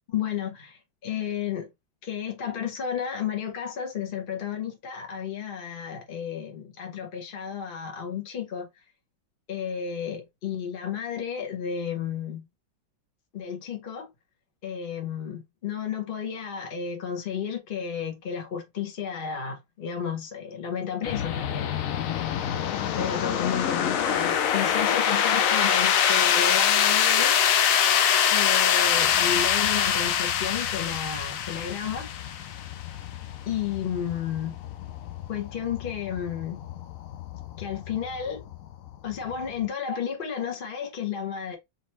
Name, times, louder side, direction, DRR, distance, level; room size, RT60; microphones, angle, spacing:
voice 1, 0.1-1.7 2.0-8.7 9.5-12.5 13.3-14.1 14.6-21.7 22.6-27.4 28.3-32.1 33.5-34.6 35.3-36.6 37.6-38.4 39.0-41.6, left 8 dB, 45° left, 0.7 m, -32 dB
sound 1, 21.0-39.7, left 8 dB, 80° left, 0.7 m, -25 dB
3.9 x 3.7 x 2.9 m
omnidirectional pair, 2.1 m